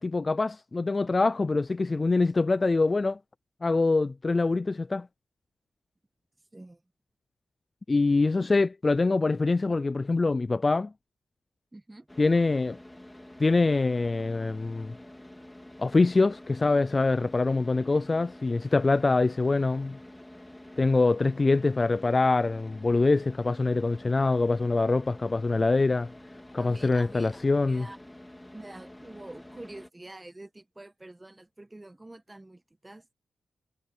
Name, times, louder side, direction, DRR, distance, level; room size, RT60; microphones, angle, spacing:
voice 1, 0.0-3.2 3.6-5.1 7.9-10.9 12.2-12.8 13.4-14.9 15.8-20.0 20.8-26.1 26.5-27.9, left 3 dB, 30° left, 0.3 m, -24 dB
voice 2, 11.7-12.1 26.6-27.4 27.7-28.0 28.5-33.1, right 2 dB, 20° right, 1.5 m, -47 dB
Car / Idling, 12.1-29.9, left 1 dB, 10° left, 3.7 m, -48 dB
cardioid pair, 75°, 0 cm